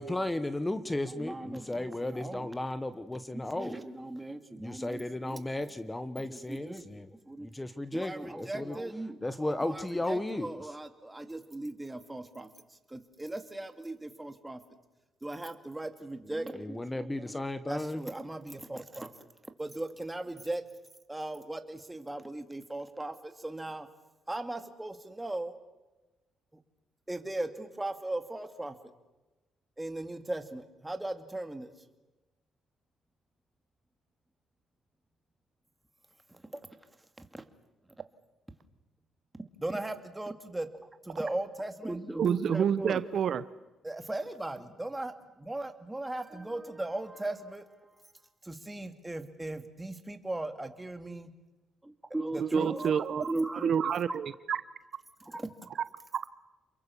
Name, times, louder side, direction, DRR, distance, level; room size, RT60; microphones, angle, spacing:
voice 1, 0.0-3.8 4.6-7.1 7.4-8.8 9.2-10.5 16.5-18.1, left 1 dB, 15° left, 11 dB, 1.3 m, -34 dB
voice 2, 1.1-2.5 3.3-5.5 6.3-7.5 7.9-14.6 15.2-20.6 21.1-23.9 24.3-25.5 27.1-28.8 29.8-31.7 36.3-36.7 37.2-37.4 39.4-43.0 43.8-47.7 48.4-51.3 51.8-53.9 55.2-55.5, right 2 dB, 10° right, 7 dB, 2.2 m, -38 dB
voice 3, 42.2-43.4 52.4-53.2 53.6-54.6, right 8 dB, 60° right, 15 dB, 0.8 m, -28 dB
28.5 x 22.5 x 7.1 m, 1.1 s
cardioid pair, 90°, 0 cm